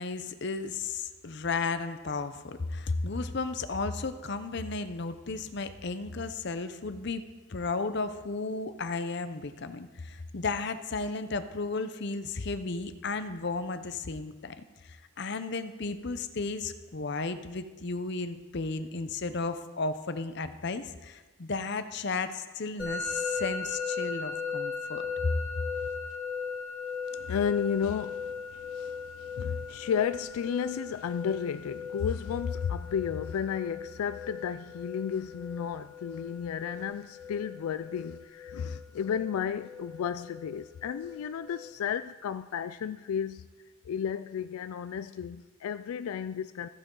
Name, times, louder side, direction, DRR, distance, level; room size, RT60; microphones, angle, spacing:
voice 1, 0.0-25.3, left 3 dB, 50° left, 0.6 m, -34 dB
Musical instrument, 22.8-41.7, left 5 dB, 5° right, 3.2 m, -38 dB
voice 2, 27.1-43.5 43.8-46.7, left 7 dB, 85° left, 0.3 m, -33 dB
14.5 x 8.8 x 3.8 m
head